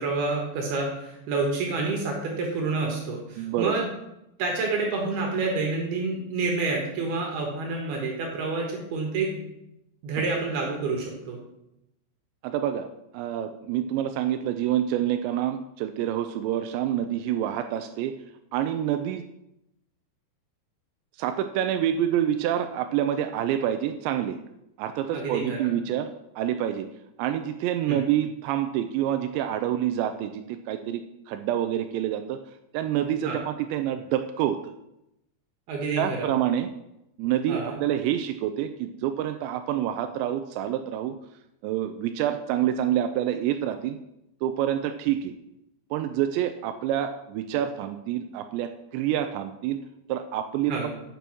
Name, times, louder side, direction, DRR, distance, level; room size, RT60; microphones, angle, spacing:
voice 1, 0.0-3.8 4.4-9.4 10.0-11.4 25.1-25.6 27.9-28.0 33.2-33.4 35.7-36.3 37.5-37.8 50.7-50.9, right 3 dB, 70° right, 0 dB, 3.2 m, -28 dB
voice 2, 3.4-3.8 10.2-10.3 12.4-12.9 13.1-18.1 18.5-19.2 21.2-24.4 24.8-26.1 26.4-26.9 27.2-31.0 31.3-32.4 32.7-34.7 36.0-36.7 37.2-41.2 41.6-44.0 44.4-45.3 45.9-49.8 50.1-50.9, right 11 dB, 85° right, 8 dB, 2.8 m, -27 dB
8.7 x 6.9 x 6.0 m, 0.86 s
omnidirectional pair, 5.0 m